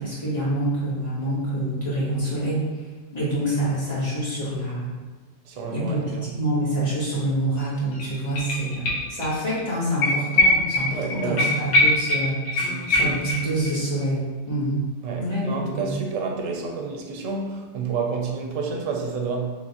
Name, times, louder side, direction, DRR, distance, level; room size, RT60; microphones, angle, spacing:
voice 1, 0.0-2.7 3.1-4.9 5.7-6.0 6.3-12.4 12.9-14.8 15.2-15.9, right 1 dB, 35° left, -9 dB, 1.0 m, -26 dB
voice 2, 5.5-6.3 10.9-11.6 15.0-19.5, right 4 dB, 85° right, 1 dB, 1.0 m, -29 dB
sound 1, 7.6-7.7 7.9-9.3 9.6-9.7 10.0-13.7 14.0-14.1, left 1 dB, 80° left, 1.2 m, -22 dB
3.5 x 3.0 x 2.8 m, 1.3 s
omnidirectional pair, 1.3 m